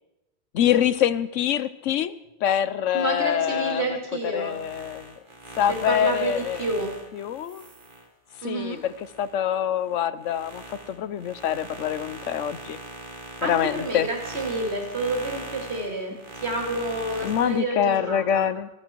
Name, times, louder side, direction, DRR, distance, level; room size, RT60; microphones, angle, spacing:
voice 1, 0.5-3.8 4.3-5.1 5.6-6.6 7.1-7.7 8.4-8.9 9.2-12.8 13.4-14.1 17.2-18.7, left 10 dB, 90° left, 16 dB, 1.1 m, -25 dB
voice 2, 2.9-4.6 5.7-6.9 8.4-8.8 13.4-18.5, right 2 dB, 60° right, 1 dB, 3.2 m, -29 dB
sound 1, 4.3-9.4 9.8-17.6, right 2 dB, 45° right, 1.9 m, -40 dB
26.5 x 8.9 x 4.6 m, 1.0 s
omnidirectional pair, 1.2 m